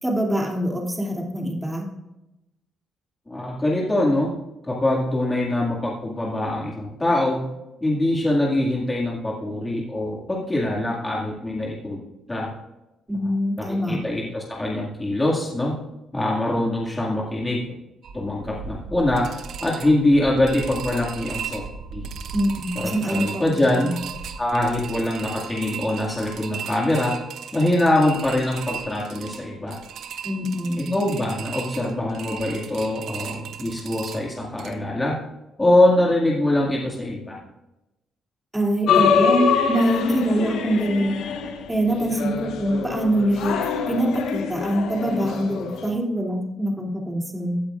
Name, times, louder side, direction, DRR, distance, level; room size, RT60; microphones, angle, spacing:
voice 1, 0.0-1.8 13.1-14.0 22.3-23.4 23.8-24.0 30.2-30.9 38.5-41.1 41.7-43.6 43.9-47.6, right 1 dB, 10° right, -1 dB, 2.7 m, -24 dB
voice 2, 3.3-4.3 4.6-7.4 7.8-12.0 12.3-12.5 13.6-15.8 16.1-17.6 18.1-21.6 21.9-22.1 22.8-23.9 24.4-27.2 27.5-29.8 30.8-35.2 35.6-37.4, left 1 dB, 20° left, -4 dB, 2.1 m, -23 dB
sound 1, 18.0-34.7, right 7 dB, 75° right, 0.9 m, -36 dB
sound 2, 38.9-45.9, left 6 dB, 80° left, 0.9 m, -24 dB
15.5 x 8.6 x 2.5 m, 0.93 s
cardioid pair, 90°, 0 cm